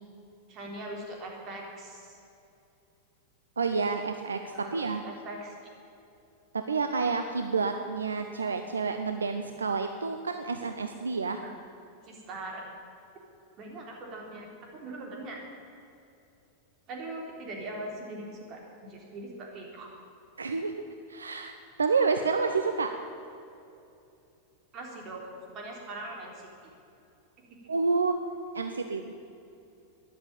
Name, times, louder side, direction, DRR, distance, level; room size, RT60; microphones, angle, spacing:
voice 1, 0.5-2.2 4.5-5.5 11.4-11.5 12.0-12.6 13.6-15.4 16.9-19.9 24.7-26.5, right 2 dB, 35° right, 0 dB, 3.6 m, -41 dB
voice 2, 3.6-5.0 6.5-11.4 20.4-20.8 21.1-21.5 21.8-22.9 27.7-28.2 28.5-29.1, right 4 dB, 75° right, 7 dB, 0.7 m, -29 dB
13.0 x 11.0 x 8.6 m, 2.7 s
figure-of-eight pair, 90°, 0 cm